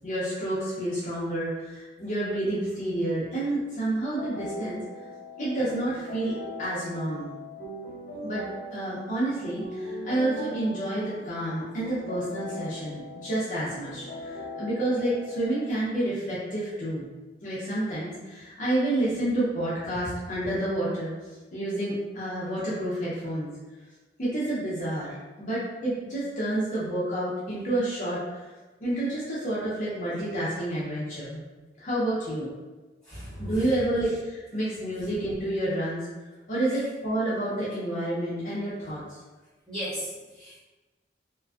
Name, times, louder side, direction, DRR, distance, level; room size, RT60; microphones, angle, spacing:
voice 1, 0.0-4.8 5.4-6.3 6.6-7.3 8.2-8.4 8.7-17.1 17.4-21.1 21.5-23.5 24.2-28.5 28.8-31.4 31.8-32.5 33.4-36.1 36.5-39.2, right 1 dB, 40° left, -10 dB, 0.5 m, -29 dB
sound 1, 4.1-15.8, left 1 dB, 80° left, 0.7 m, -40 dB
voice 2, 33.0-33.7 39.7-40.6, equal, 5° left, -12 dB, 1.1 m, -36 dB
2.4 x 2.2 x 2.3 m, 1.2 s
head